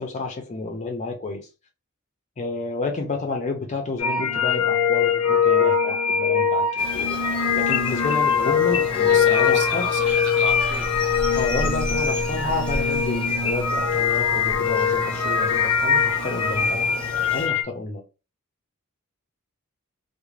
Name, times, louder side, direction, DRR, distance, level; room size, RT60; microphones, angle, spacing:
voice 1, 0.0-1.5 2.4-6.7 6.9-7.2 7.5-9.9 11.3-16.9 17.3-18.0, left 3 dB, 35° left, 0.4 m, -30 dB
sound 1, 4.0-17.6, left 6 dB, 90° left, 0.4 m, -22 dB
sound 2, 6.8-17.5, left 1 dB, 5° left, 0.8 m, -34 dB
voice 2, 9.1-10.9, right 5 dB, 60° right, 0.6 m, -33 dB
2.4 x 2.0 x 3.0 m
head